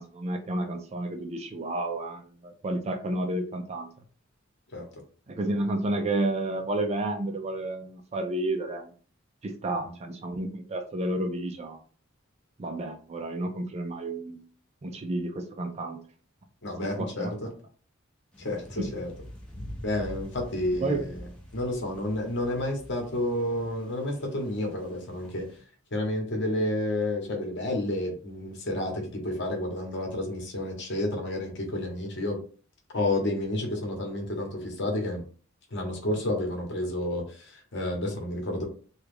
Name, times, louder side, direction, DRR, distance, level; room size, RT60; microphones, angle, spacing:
voice 1, 0.0-3.9 5.3-8.9 9.4-11.8 12.6-14.4 14.8-16.0 16.8-17.3 18.8-19.0 20.8-21.1, right 2 dB, 30° right, 5 dB, 0.4 m, -31 dB
voice 2, 16.6-17.3 18.4-19.1 19.8-21.2 21.5-25.4 25.9-32.4 32.9-35.2 35.7-38.6, left 1 dB, 55° left, 1 dB, 1.1 m, -30 dB
sound 1, 18.3-25.6, equal, 5° left, 0.7 m, -45 dB
3.1 x 2.3 x 3.4 m, 0.41 s
head